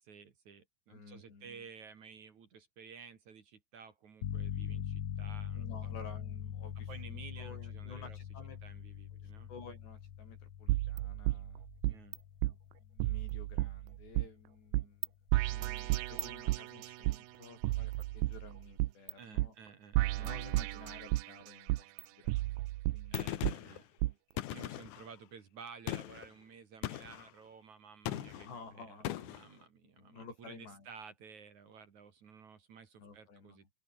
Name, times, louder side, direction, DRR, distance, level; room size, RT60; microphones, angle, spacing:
voice 1, 0.0-6.0 6.9-8.2 8.6-9.5 11.9-12.2 19.2-20.3 23.1-23.9 24.5-33.8, right 6 dB, 50° right, 3.5 m, -53 dB
voice 2, 0.9-1.6 5.5-8.6 9.1-11.7 12.8-15.1 15.4-19.6 20.2-22.7 22.9-23.4 28.1-29.3 30.0-30.9 33.0-33.7, left 4 dB, 85° left, 10.0 m, -53 dB
sound 1, 4.2-14.7, left 10 dB, 55° left, 2.3 m, -43 dB
sound 2, 10.7-12.2 12.4-12.5 13.0-14.3 14.7-15.1 15.3-17.2 17.6-19.1 19.4-19.5 19.9-21.3 21.7-23.5 24.0-24.1, right 19 dB, 80° right, 2.1 m, -33 dB
Gunshot gunfire, 23.1-23.8 24.4-25.1 25.9-26.3 26.8-27.3 28.1-28.5 29.0-29.5, left 13 dB, 70° left, 2.0 m, -39 dB
open air
omnidirectional pair, 4.8 m